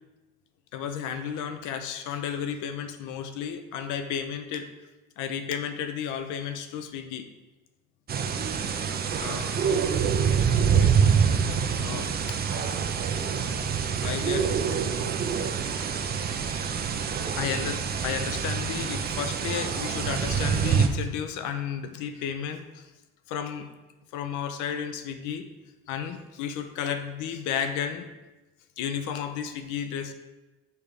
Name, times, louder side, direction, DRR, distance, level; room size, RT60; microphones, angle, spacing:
voice 1, 0.7-4.7 5.2-7.3 9.2-9.5 10.5-10.9 11.3-11.5 11.8-12.4 14.0-14.5 15.3-15.4 16.1-16.2 16.4-16.6 16.9-22.9 23.3-23.7 24.1-25.5 25.9-28.1 28.8-30.1, left 8 dB, 75° left, 9 dB, 0.8 m, -33 dB
sound 1, 8.1-20.9, right 6 dB, 30° right, 0.6 m, -26 dB
7.2 x 5.0 x 3.3 m, 1.1 s
cardioid pair, 110°, 31 cm